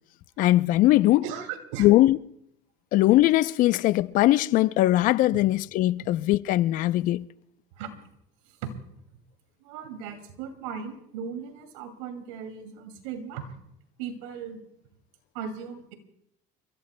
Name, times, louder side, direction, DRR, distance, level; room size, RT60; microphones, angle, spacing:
voice 1, 0.4-1.2 1.8-2.2 2.9-7.3, left 16 dB, 60° left, 0.6 m, -20 dB
voice 2, 1.2-1.9 5.3-5.4 7.8-7.9 8.6-8.7 9.6-13.5 14.0-14.6 15.3-15.9, right 7 dB, 85° right, 2.4 m, -37 dB
30.0 x 15.5 x 2.2 m
supercardioid pair, 100°, 15 cm